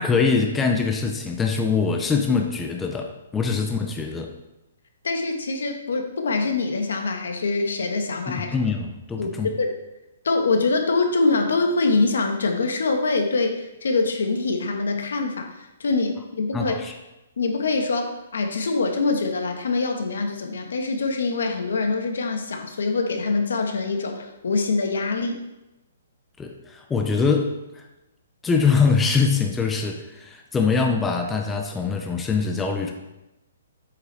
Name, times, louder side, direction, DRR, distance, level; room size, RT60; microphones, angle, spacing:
voice 1, 0.0-4.3 8.3-9.5 16.5-16.9 26.4-27.8 28.4-32.9, left 5 dB, 5° left, 2 dB, 0.5 m, -23 dB
voice 2, 5.0-8.5 9.2-9.7 10.2-15.5 15.8-16.7 17.4-25.4, left 3 dB, 85° left, 4 dB, 1.4 m, -24 dB
8.2 x 7.2 x 3.4 m, 0.96 s
hypercardioid pair, 175°, 0 cm